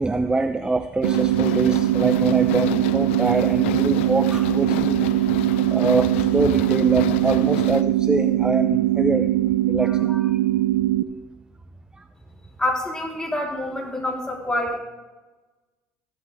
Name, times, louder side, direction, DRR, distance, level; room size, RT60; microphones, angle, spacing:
voice 1, 0.0-5.1 5.7-9.3 9.7-10.1, right 3 dB, 15° right, 9 dB, 0.6 m, -24 dB
sound 1, 1.0-7.8, left 13 dB, 90° left, 0.6 m, -32 dB
sound 2, 1.0-11.0, right 15 dB, 90° right, 0.4 m, -21 dB
voice 2, 9.8-10.2 12.6-14.8, left 1 dB, 10° left, -1 dB, 3.8 m, -27 dB
15.5 x 12.5 x 3.5 m, 1.2 s
supercardioid pair, 85°, 6 cm